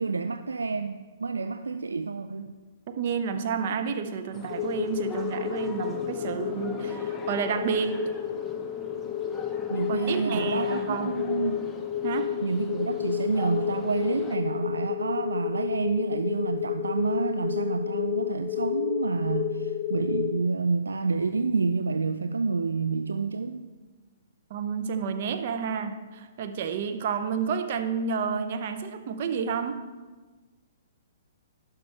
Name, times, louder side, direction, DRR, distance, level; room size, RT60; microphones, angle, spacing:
voice 1, 0.0-2.6 9.7-11.5 12.4-23.6, right 4 dB, 75° right, 8 dB, 0.3 m, -28 dB
voice 2, 3.0-8.0 9.9-11.2 12.0-12.3 24.5-29.8, right 6 dB, 45° right, 7 dB, 0.7 m, -30 dB
sound 1, 4.3-14.4, left 3 dB, 10° left, 0.7 m, -42 dB
sound 2, 4.5-20.4, left 12 dB, 50° left, 0.3 m, -31 dB
11.0 x 5.8 x 3.3 m, 1.3 s
figure-of-eight pair, 120°, 0 cm